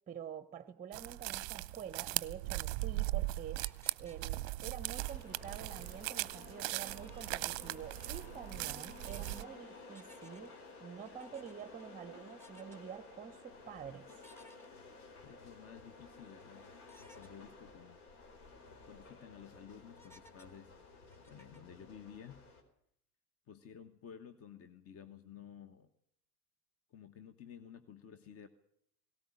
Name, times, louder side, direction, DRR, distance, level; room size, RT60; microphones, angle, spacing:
voice 1, 0.1-14.2, right 8 dB, 15° right, 0.9 m, -48 dB
sound 1, 0.9-9.4, right 19 dB, 45° right, 0.7 m, -39 dB
sound 2, 2.5-5.7 6.0-7.7 8.0-8.3 8.9-9.5 9.9-10.6 11.0-11.8 12.3-12.8 14.1-15.3 15.7-15.8 16.9-17.3 17.8-17.9 18.2-18.3 18.8-19.1 19.9-21.8, left 2 dB, 5° left, 1.7 m, -62 dB
sound 3, 4.6-22.6, left 3 dB, 65° left, 4.6 m, -54 dB
voice 2, 15.2-16.7 17.2-18.0 18.8-22.4 23.5-25.9 26.9-28.5, left 8 dB, 30° left, 1.3 m, -53 dB
18.0 x 18.0 x 8.7 m
figure-of-eight pair, 85°, 47 cm